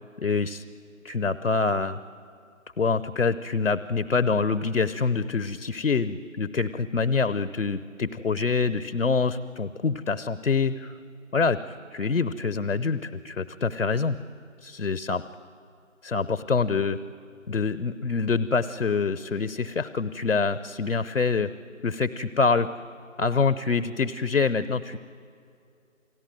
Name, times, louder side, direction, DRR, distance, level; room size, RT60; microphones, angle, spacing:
voice 1, 0.2-0.6 1.0-2.0 2.8-11.0 11.3-14.2 14.6-15.2 16.0-17.0 17.5-21.5 21.8-22.8 23.2-25.0, left 4 dB, 65° left, 15 dB, 0.9 m, -25 dB
29.0 x 19.0 x 9.1 m, 2.4 s
figure-of-eight pair, 175°, 40 cm